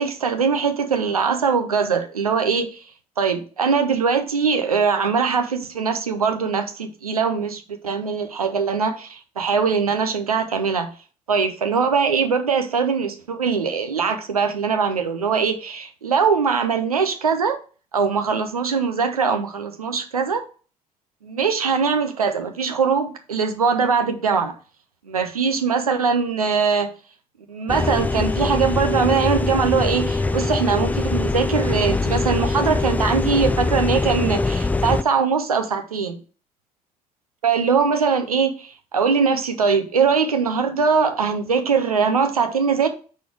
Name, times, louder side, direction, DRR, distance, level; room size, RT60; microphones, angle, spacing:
voice 1, 0.0-2.8 3.2-10.9 11.3-17.6 17.9-20.4 21.2-24.5 25.1-26.9 27.5-36.2 37.4-42.9, right 5 dB, 85° right, 7 dB, 0.5 m, -21 dB
sound 1, 27.7-35.0, left 3 dB, 10° left, 0.3 m, -23 dB
5.4 x 4.2 x 4.7 m, 0.37 s
figure-of-eight pair, 45°, 18 cm